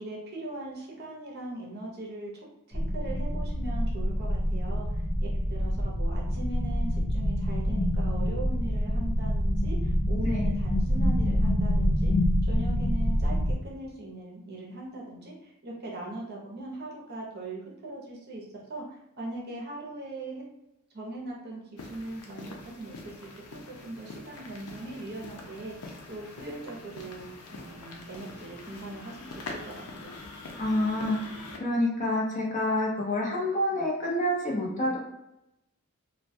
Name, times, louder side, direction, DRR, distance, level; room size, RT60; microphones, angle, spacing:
voice 1, 0.0-2.3 2.7-5.0 5.5-12.1 12.5-18.4 18.7-20.4 20.9-27.3 27.5-30.1, right 2 dB, 45° right, -3 dB, 0.6 m, -40 dB
sound 1, 2.7-13.5, equal, 5° right, 0.7 m, -26 dB
sound 2, 21.8-31.6, left 2 dB, 90° left, 0.5 m, -44 dB
voice 2, 30.6-31.3 31.6-35.0, left 1 dB, 35° left, -3 dB, 0.6 m, -27 dB
2.2 x 2.2 x 2.6 m, 0.86 s
head